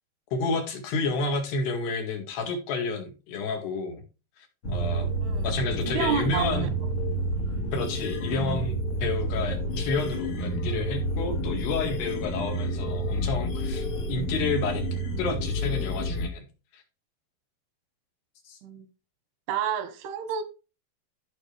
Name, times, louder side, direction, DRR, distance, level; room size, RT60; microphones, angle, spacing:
voice 1, 0.3-4.0 4.7-5.1 5.4-6.7 7.7-14.8 15.2-16.4 16.7-16.8 18.5-18.6, left 3 dB, 90° left, 4.0 m, -30 dB
sound 1, 4.6-16.3, right 1 dB, 60° left, 1.4 m, -29 dB
voice 2, 5.8-6.7 18.6-18.9 19.5-20.4, right 8 dB, 85° right, 3.0 m, -30 dB
14.0 x 5.1 x 3.2 m
omnidirectional pair, 4.6 m